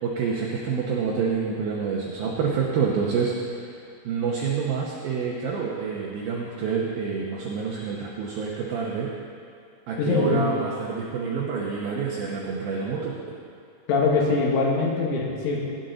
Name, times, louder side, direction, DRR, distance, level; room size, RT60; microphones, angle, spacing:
voice 1, 0.0-3.8 4.0-9.1 9.9-13.1, right 5 dB, 85° right, -3 dB, 2.1 m, -27 dB
voice 2, 10.0-10.4 13.9-15.6, left 4 dB, 75° left, -2 dB, 4.0 m, -22 dB
17.5 x 9.3 x 3.9 m, 2.4 s
omnidirectional pair, 5.7 m